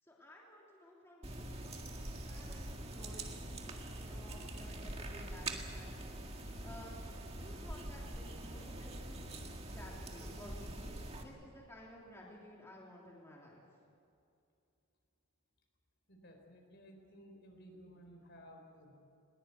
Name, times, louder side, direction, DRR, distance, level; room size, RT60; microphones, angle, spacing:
voice 1, 0.0-5.9 6.6-6.9 7.3-9.2 9.6-13.6, equal, 10° left, -4 dB, 3.1 m, -55 dB
sound 1, 1.2-11.2, right 1 dB, 25° right, 1.9 m, -44 dB
voice 2, 16.1-18.9, equal, 50° left, 3 dB, 4.2 m, -56 dB
21.5 x 20.5 x 8.3 m, 2.5 s
head